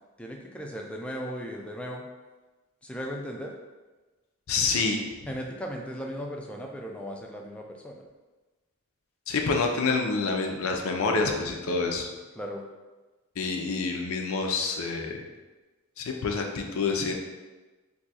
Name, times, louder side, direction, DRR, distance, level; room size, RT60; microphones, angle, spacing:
voice 1, 0.2-2.0 2.8-3.5 5.3-8.0 12.4-12.7, equal, 5° left, 0 dB, 0.3 m, -37 dB
voice 2, 4.5-5.0 9.3-12.1 13.4-15.1 16.0-17.1, left 4 dB, 70° left, 2 dB, 0.5 m, -27 dB
2.7 x 2.3 x 4.0 m, 1.2 s
head